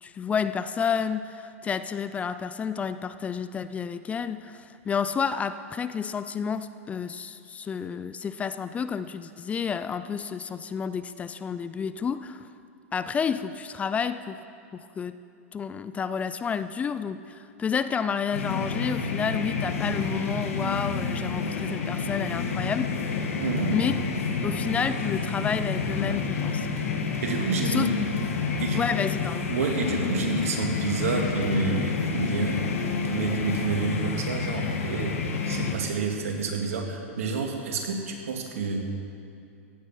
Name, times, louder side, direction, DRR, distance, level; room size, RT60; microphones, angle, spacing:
voice 1, 0.0-12.5 12.9-14.4 14.7-15.2 15.5-22.9 23.7-24.0 24.4-26.7 27.6-27.9 28.7-29.5, left 6 dB, 20° left, 13 dB, 0.4 m, -30 dB
sound 1, 18.3-35.8, left 5 dB, 80° left, 1.6 m, -29 dB
voice 2, 23.3-23.8 27.2-27.9 28.6-28.8 29.5-32.6 33.1-38.9, right 4 dB, 80° right, 2 dB, 2.1 m, -29 dB
16.0 x 9.5 x 5.7 m, 2.5 s
hypercardioid pair, 120°, 8 cm